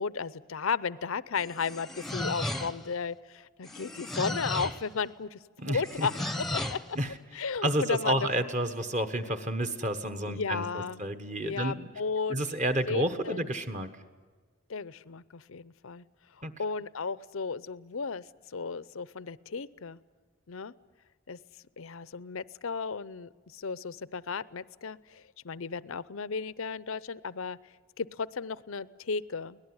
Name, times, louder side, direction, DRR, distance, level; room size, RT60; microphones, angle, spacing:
voice 1, 0.0-5.4 5.7-6.1 6.5-7.0 7.3-8.3 10.2-11.0 11.4-12.4 12.9-13.5 14.7-16.0 16.6-20.0 20.5-20.7 21.3-21.4 21.8-27.6 28.0-29.6, left 5 dB, 70° left, 18 dB, 0.6 m, -34 dB
sound 1, 1.4-3.0 3.6-4.9 5.8-6.9, left 1 dB, ahead, 0.9 m, -35 dB
voice 2, 5.6-6.1 6.9-7.1 7.6-11.9 12.3-13.9 16.4-16.5, right 1 dB, 35° right, 8 dB, 1.3 m, -30 dB
23.5 x 18.5 x 9.7 m, 1.5 s
head